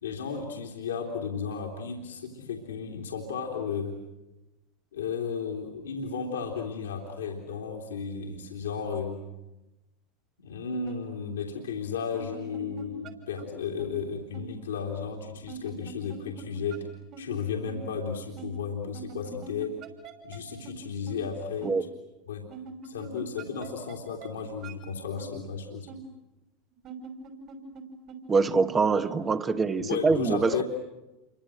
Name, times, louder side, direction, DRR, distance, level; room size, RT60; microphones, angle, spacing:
voice 1, 0.0-4.0 4.9-9.2 10.4-16.9 17.2-19.8 20.2-21.8 22.3-22.5 22.8-25.9 29.8-30.6, left 6 dB, 85° left, 0 dB, 3.1 m, -34 dB
sound 1, 10.9-11.0 12.0-13.1 13.4-13.5 13.8-13.9 14.3-14.4 15.5-16.4 16.7-16.8 17.1-17.2 17.7-17.8 18.4-18.5 18.9-20.4 20.6-20.7 21.1-21.2 21.6-21.7 22.5-24.0 24.2-24.3 24.6-24.7 25.2-25.3 25.9-26.0 26.7-27.8 28.1-28.2 28.5-28.6 29.0-29.2, right 5 dB, 50° right, 5.8 m, -43 dB
voice 2, 28.3-30.6, right 4 dB, 25° right, 10 dB, 1.4 m, -24 dB
28.0 x 24.5 x 7.8 m, 1.0 s
hypercardioid pair, 95°, 0 cm